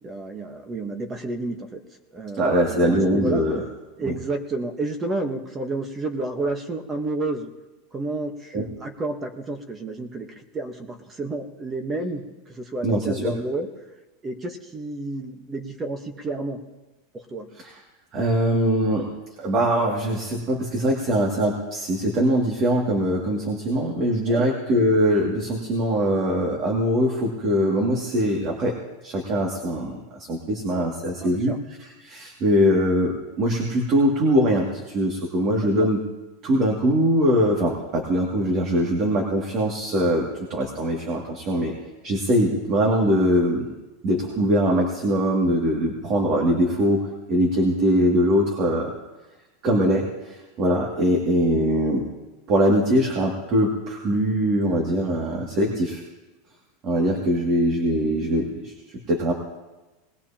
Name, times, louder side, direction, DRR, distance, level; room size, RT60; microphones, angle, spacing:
voice 1, 0.0-1.8 2.1-3.5 4.0-7.5 7.9-13.8 14.2-16.6 17.1-17.5 24.3-24.5 31.2-31.6 35.6-35.9, right 2 dB, 20° right, 6 dB, 1.3 m, -31 dB
voice 2, 2.4-3.6 4.0-4.1 8.5-8.6 12.8-13.3 17.6-17.7 18.1-19.1 19.4-28.8 29.0-30.0 30.3-36.0 36.4-41.7 42.0-43.7 44.0-48.9 49.6-52.1 52.5-56.0 56.8-59.3, equal, 40° right, -1 dB, 2.5 m, -22 dB
20.5 x 18.0 x 3.0 m, 1.1 s
supercardioid pair, 135°, 0 cm